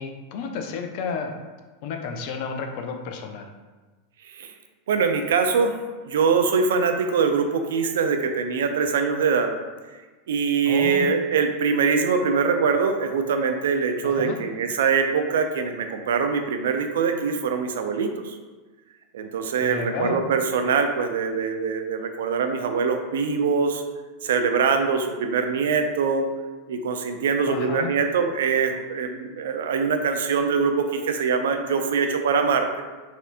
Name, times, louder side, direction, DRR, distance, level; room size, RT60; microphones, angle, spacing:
voice 1, 0.0-1.3 1.8-3.5 10.7-11.1 14.0-14.4 19.6-20.2 27.5-27.9, left 5 dB, 55° left, 4 dB, 0.5 m, -31 dB
voice 2, 4.9-5.7 6.1-9.5 10.3-18.4 19.1-23.8 24.2-26.3 26.7-32.7, right 5 dB, 75° right, 6 dB, 0.4 m, -23 dB
4.1 x 2.6 x 2.5 m, 1.3 s
hypercardioid pair, 95°, 0 cm